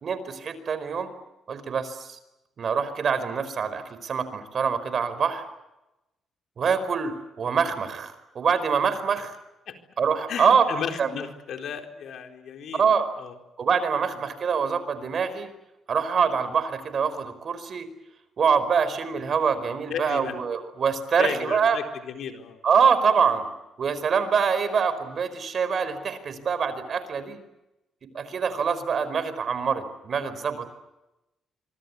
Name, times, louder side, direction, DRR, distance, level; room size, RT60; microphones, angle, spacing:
voice 1, 0.0-1.1 1.5-2.2 2.6-5.5 6.6-9.3 10.0-10.7 11.0-11.2 12.8-13.1 13.6-15.5 15.9-17.9 18.4-21.8 22.6-23.5 23.8-27.4 28.1-30.7, right 6 dB, 50° right, 13 dB, 4.5 m, -25 dB
voice 2, 10.3-12.9 13.2-13.3 19.9-20.4 21.2-22.6, left 7 dB, 70° left, 5 dB, 4.2 m, -34 dB
25.5 x 24.5 x 8.4 m, 0.94 s
cardioid pair, 90°, 0 cm